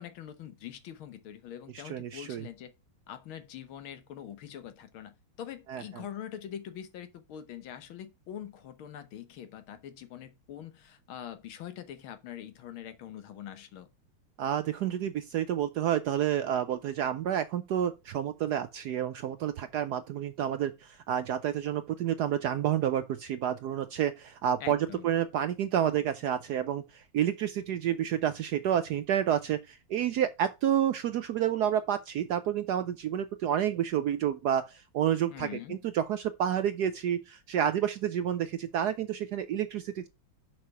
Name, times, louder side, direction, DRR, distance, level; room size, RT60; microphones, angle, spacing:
voice 1, 0.0-2.7 3.1-13.9 24.6-25.1 35.3-35.9, left 10 dB, 80° left, 1.8 m, -44 dB
voice 2, 1.8-2.5 5.7-5.8 14.4-40.1, right 10 dB, 75° right, 0.9 m, -29 dB
6.6 x 5.6 x 5.5 m
omnidirectional pair, 2.2 m